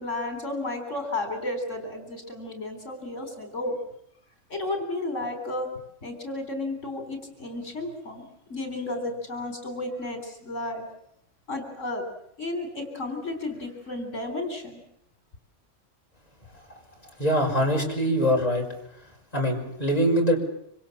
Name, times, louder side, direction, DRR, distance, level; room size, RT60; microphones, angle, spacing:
voice 1, 0.0-3.8 4.5-5.7 6.0-10.8 11.5-12.0 12.4-14.8, left 2 dB, 75° left, 6 dB, 4.3 m, -33 dB
voice 2, 17.2-18.7 19.3-20.4, equal, 30° left, 0 dB, 5.7 m, -23 dB
26.5 x 25.5 x 7.3 m, 0.73 s
omnidirectional pair, 1.3 m